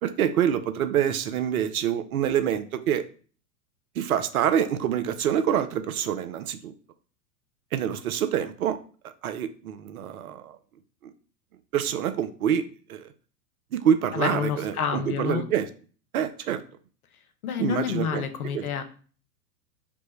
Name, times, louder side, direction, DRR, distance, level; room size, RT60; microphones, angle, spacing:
voice 1, 0.0-3.0 4.0-6.7 7.7-8.8 9.2-10.6 11.0-11.1 11.7-13.1 13.7-15.7 16.1-16.6 17.6-18.2 18.5-18.6, right 9 dB, 60° right, 10 dB, 0.6 m, -26 dB
voice 2, 14.1-15.5 17.4-18.8, left 8 dB, 60° left, 8 dB, 0.7 m, -28 dB
5.0 x 2.1 x 3.0 m, 0.41 s
figure-of-eight pair, 95°, 48 cm